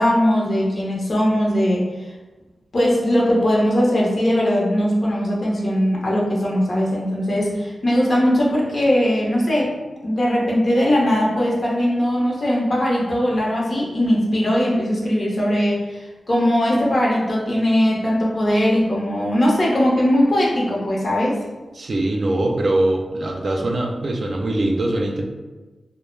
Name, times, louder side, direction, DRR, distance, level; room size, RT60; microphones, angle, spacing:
voice 1, 0.0-1.9 2.7-9.8 10.0-21.4, equal, 55° left, -3 dB, 0.7 m, -19 dB
voice 2, 21.7-25.2, right 1 dB, 60° right, 1 dB, 0.4 m, -22 dB
2.3 x 2.0 x 3.1 m, 1.2 s
cardioid pair, 65°, 0 cm